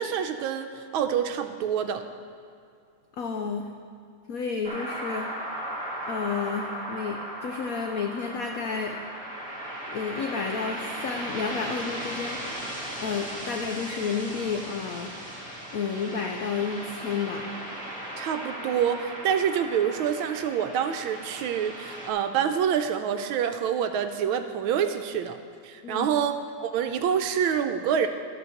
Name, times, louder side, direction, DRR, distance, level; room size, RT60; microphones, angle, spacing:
voice 1, 0.0-2.0 18.2-25.4 25.6-28.1, right 8 dB, 85° right, 7 dB, 1.5 m, -27 dB
voice 2, 3.2-3.7 4.3-5.3 6.1-9.0 9.9-12.4 13.0-15.1 15.7-17.5 25.8-26.1, left 5 dB, 80° left, 3 dB, 0.7 m, -31 dB
sound 1, 4.6-22.1, right 1 dB, 5° left, 1.4 m, -37 dB
13.5 x 4.7 x 6.4 m, 2.4 s
omnidirectional pair, 2.3 m